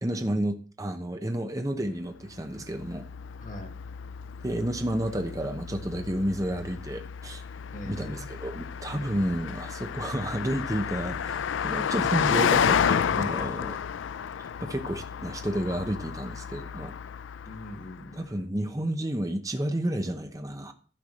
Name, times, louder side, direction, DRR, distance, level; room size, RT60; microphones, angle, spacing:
voice 1, 0.0-3.0 4.4-7.4 7.9-13.8 14.4-16.9 18.1-20.7, right 1 dB, 20° right, 6 dB, 0.9 m, -31 dB
Car passing by, 2.3-18.1, left 7 dB, 90° left, 0.4 m, -31 dB
voice 2, 3.4-3.8 7.7-8.3 8.9-9.2 13.4-13.5 17.5-18.3, equal, 40° left, 4 dB, 1.8 m, -42 dB
12.0 x 4.7 x 6.5 m, 0.42 s
head